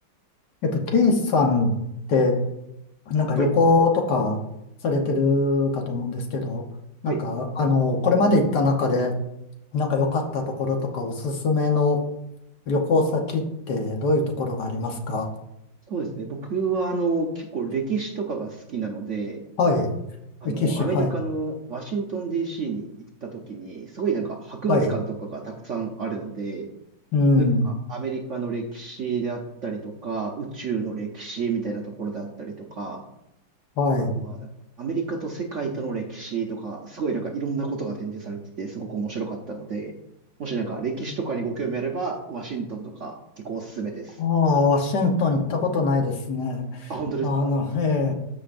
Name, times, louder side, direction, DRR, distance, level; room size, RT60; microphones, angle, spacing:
voice 1, 0.6-1.7 2.1-2.3 3.1-4.4 4.8-6.6 7.0-9.1 9.7-12.0 12.7-15.3 19.6-19.9 20.4-21.1 24.7-24.9 27.1-27.7 33.8-34.2 44.2-46.9 47.2-48.1, left 3 dB, 65° left, 2 dB, 1.6 m, -22 dB
voice 2, 15.9-19.4 20.4-22.9 23.2-25.0 25.3-26.7 27.6-33.0 34.2-34.4 34.8-39.9 40.4-43.1 43.4-44.2 46.9-47.5, right 4 dB, 55° right, 1 dB, 0.9 m, -30 dB
14.0 x 5.0 x 2.5 m, 0.86 s
omnidirectional pair, 2.0 m